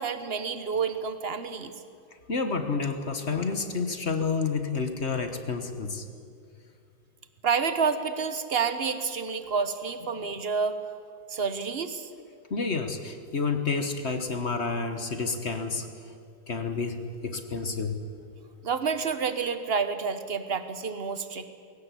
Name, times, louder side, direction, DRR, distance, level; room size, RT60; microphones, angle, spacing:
voice 1, 0.0-1.7 7.4-10.8 11.3-12.1 18.6-21.5, right 5 dB, 40° right, 10 dB, 1.1 m, -29 dB
voice 2, 2.3-6.0 12.5-16.1 16.5-18.0, left 4 dB, 40° left, 7 dB, 1.4 m, -30 dB
21.0 x 18.0 x 8.4 m, 2.4 s
omnidirectional pair, 2.1 m